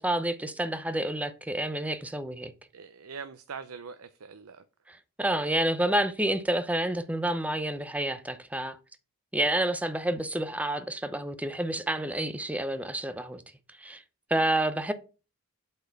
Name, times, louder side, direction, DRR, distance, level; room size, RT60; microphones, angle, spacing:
voice 1, 0.0-2.5 5.2-8.8 9.3-13.4 13.8-14.0 14.3-14.9, right 1 dB, 5° right, 0.7 m, -29 dB
voice 2, 2.7-4.6, right 5 dB, 75° right, 0.6 m, -42 dB
8.1 x 4.4 x 5.8 m
head